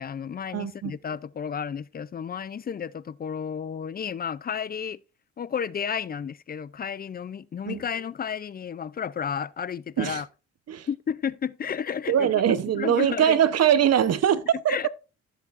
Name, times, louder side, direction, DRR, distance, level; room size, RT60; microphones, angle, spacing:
voice 1, 0.0-5.0 5.4-10.3 10.9-12.3 12.7-13.4 14.7-14.9, left 7 dB, 30° left, 0.4 m, -32 dB
voice 2, 0.5-1.0 7.7-7.8 10.0-10.2 10.7-10.9 12.1-14.9, right 9 dB, 55° right, 0.9 m, -22 dB
14.0 x 7.3 x 2.5 m
cardioid pair, 90°, 30 cm